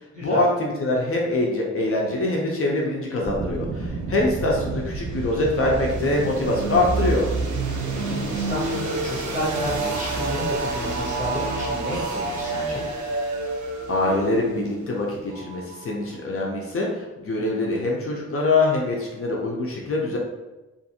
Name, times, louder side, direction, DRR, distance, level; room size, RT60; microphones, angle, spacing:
voice 1, 0.2-7.3 13.9-20.2, left 2 dB, 50° left, -2 dB, 0.5 m, -24 dB
sound 1, 3.2-16.0, right 3 dB, 80° right, 0.6 m, -28 dB
voice 2, 7.9-12.8, left 1 dB, 25° right, -9 dB, 1.2 m, -31 dB
2.5 x 2.4 x 2.7 m, 1.1 s
wide cardioid pair, 130°, 29 cm